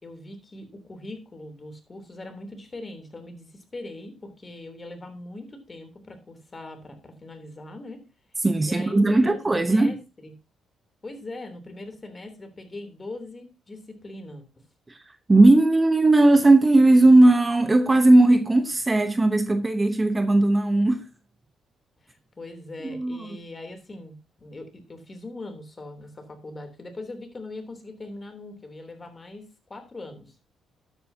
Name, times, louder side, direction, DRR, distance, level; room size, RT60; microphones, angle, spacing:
voice 1, 0.0-8.0 8.6-10.3 11.0-14.4 22.0-30.5, left 2 dB, 30° left, 3.2 m, -41 dB
voice 2, 8.4-9.9 14.9-15.0 15.3-21.0 22.8-23.3, right 2 dB, 20° right, 0.9 m, -18 dB
12.5 x 9.1 x 2.8 m
cardioid pair, 90°, 0 cm